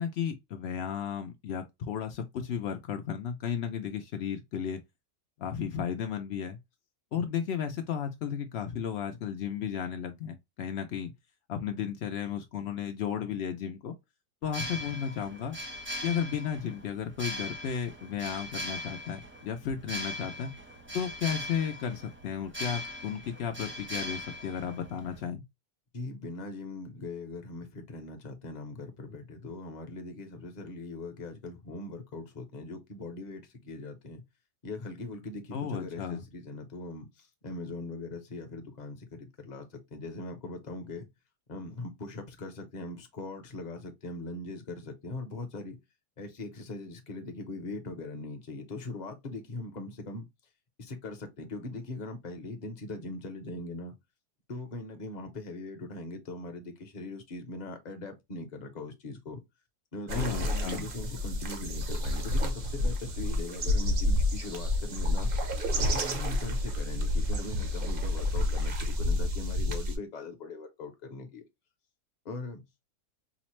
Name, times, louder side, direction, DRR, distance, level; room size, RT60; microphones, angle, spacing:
voice 1, 0.0-4.8 5.4-6.6 7.1-11.1 11.5-13.9 14.4-15.6 16.0-20.5 20.9-25.4 35.5-36.2 60.1-60.8, left 8 dB, 90° left, 0.5 m, -34 dB
sound 1, 14.4-25.2, left 1 dB, 10° right, 0.6 m, -40 dB
voice 2, 25.9-34.2 34.6-41.1 41.5-45.8 46.2-50.3 50.8-53.9 54.5-59.4 59.9-65.3 65.8-71.4 72.2-72.6, left 2 dB, 40° left, 0.6 m, -41 dB
sound 2, 60.1-70.0, left 1 dB, 50° right, 0.7 m, -29 dB
4.9 x 2.0 x 3.0 m
omnidirectional pair, 1.7 m